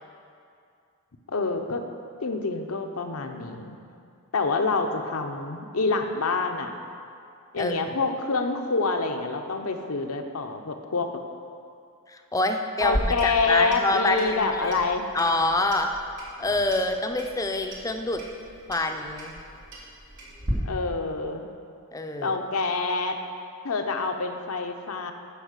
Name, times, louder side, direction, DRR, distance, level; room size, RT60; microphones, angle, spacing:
voice 1, 1.3-1.8 2.2-3.8 4.3-6.7 7.5-11.1 12.8-15.1 20.6-21.5 22.2-23.2 23.6-25.1, left 3 dB, 75° left, 5 dB, 0.8 m, -27 dB
voice 2, 12.1-14.8 15.1-15.9 16.4-18.2 18.7-19.4 21.9-22.4, left 2 dB, 15° left, 5 dB, 0.5 m, -26 dB
Clock, 12.8-20.5, equal, 90° right, 2.4 m, -37 dB
10.0 x 5.5 x 6.6 m, 2.5 s
head